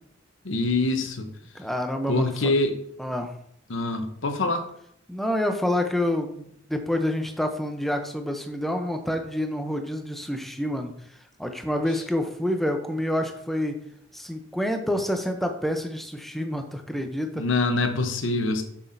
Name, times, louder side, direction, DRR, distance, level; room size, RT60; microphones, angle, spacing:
voice 1, 0.4-1.3 2.1-2.8 3.7-4.6 17.3-18.6, left 2 dB, 75° left, 7 dB, 0.9 m, -25 dB
voice 2, 1.5-2.5 3.0-3.3 5.1-11.0 11.4-13.8 14.1-17.5, left 1 dB, ahead, 5 dB, 0.7 m, -28 dB
7.2 x 6.1 x 2.7 m, 0.69 s
head